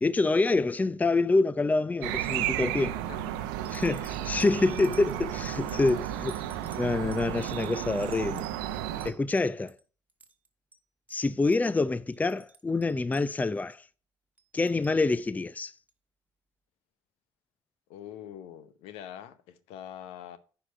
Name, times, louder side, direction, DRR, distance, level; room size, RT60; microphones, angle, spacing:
voice 1, 0.0-3.0 3.7-6.3 6.8-8.5 9.0-9.8 11.1-13.8 14.5-15.7, left 3 dB, 15° left, 0.5 m, -26 dB
sound 1, 2.0-9.1, right 12 dB, 80° right, 0.7 m, -33 dB
voice 2, 3.1-3.5 5.7-6.0 17.9-20.4, left 10 dB, 75° left, 0.9 m, -44 dB
sound 2, 3.1-3.2 3.6-9.8 10.1-10.5 10.7-10.8 11.1-11.3 11.5-11.7 12.1-13.7 14.4-15.0 15.9-16.0, right 2 dB, 15° right, 1.5 m, -54 dB
10.0 x 4.9 x 4.3 m
hypercardioid pair, 60°, 11 cm